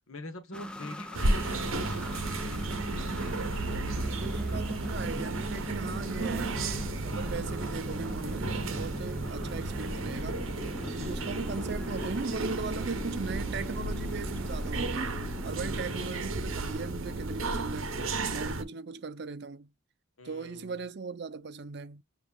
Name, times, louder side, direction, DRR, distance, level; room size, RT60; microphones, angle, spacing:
voice 1, 0.1-1.9 9.1-9.4 15.6-16.4 20.2-20.9, left 2 dB, 85° left, 1.3 m, -46 dB
sound 1, 0.5-19.0, equal, 5° left, 0.4 m, -41 dB
sound 2, 1.1-18.6, right 2 dB, 75° right, 0.9 m, -33 dB
voice 2, 4.0-10.5 10.9-15.2 15.4-18.0 18.3-19.7 20.2-22.0, right 4 dB, 55° right, 0.5 m, -38 dB
6.8 x 3.0 x 2.3 m
head